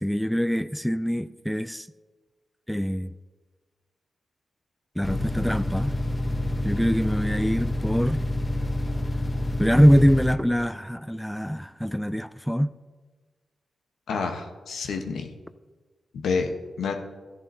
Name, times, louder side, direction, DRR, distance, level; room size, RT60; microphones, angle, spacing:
voice 1, 0.0-1.9 2.7-3.1 5.0-5.9 6.6-8.2 9.6-12.7, equal, ahead, 0.4 m, -23 dB
sound 1, 5.0-10.4, left 1 dB, 25° left, 0.9 m, -28 dB
voice 2, 14.1-15.3 16.1-16.5 16.8-16.9, left 5 dB, 85° left, 1.0 m, -28 dB
13.5 x 10.5 x 2.7 m
cardioid pair, 60°, 0 cm